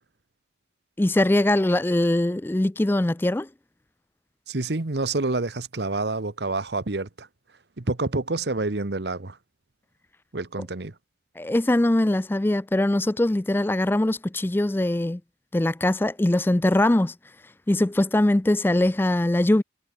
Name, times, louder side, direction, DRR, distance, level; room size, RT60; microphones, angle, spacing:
voice 1, 1.0-3.5 11.4-15.2 15.5-17.1 17.7-19.6, left 1 dB, 10° left, 0.4 m, -22 dB
voice 2, 4.5-7.3 7.8-9.4 10.3-10.9, right 3 dB, 75° right, 1.2 m, -28 dB
head